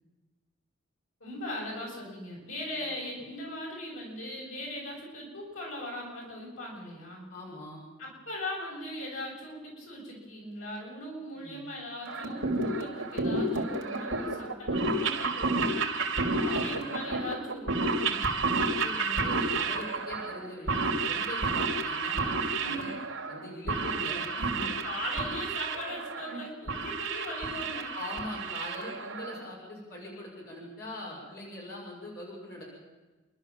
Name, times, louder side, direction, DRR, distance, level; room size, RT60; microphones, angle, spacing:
voice 1, 1.2-7.3 8.0-15.7 16.4-18.5 22.6-22.9 24.6-27.9, left 1 dB, 80° left, -2 dB, 7.3 m, -39 dB
voice 2, 7.3-7.8 11.3-11.6 16.3-16.8 18.6-22.9 23.3-24.7 26.3-26.4 27.9-32.6, left 1 dB, 50° left, -4 dB, 6.6 m, -41 dB
sound 1, 12.1-29.5, right 3 dB, 75° right, 3.0 m, -31 dB
29.0 x 12.5 x 7.5 m, 1.2 s
head